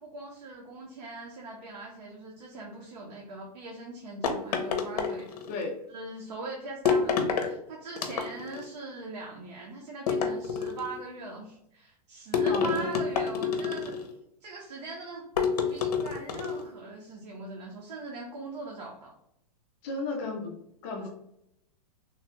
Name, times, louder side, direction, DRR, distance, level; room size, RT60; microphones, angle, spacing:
voice 1, 0.0-5.4 5.9-14.1 14.4-19.1 21.0-21.1, right 3 dB, 85° right, -1 dB, 0.8 m, -41 dB
sound 1, 4.2-5.6 6.9-7.5 8.0-8.6 10.1-11.0 12.3-14.1 15.4-16.6, left 6 dB, 75° left, 0.6 m, -28 dB
voice 2, 5.5-5.8 12.4-13.0 19.8-20.5 20.8-21.1, left 3 dB, 20° left, 1 dB, 0.4 m, -34 dB
3.1 x 2.2 x 2.9 m, 0.78 s
supercardioid pair, 175°, 20 cm